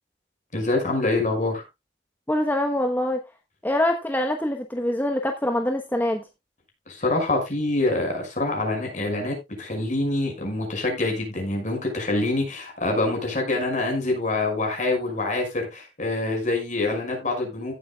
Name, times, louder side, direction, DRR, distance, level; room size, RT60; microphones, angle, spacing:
voice 1, 0.5-1.6 6.9-17.7, left 2 dB, 45° left, 5.8 m, -25 dB
voice 2, 2.3-3.2 3.6-6.2, left 1 dB, 10° left, 1.1 m, -24 dB
16.5 x 8.5 x 2.3 m
head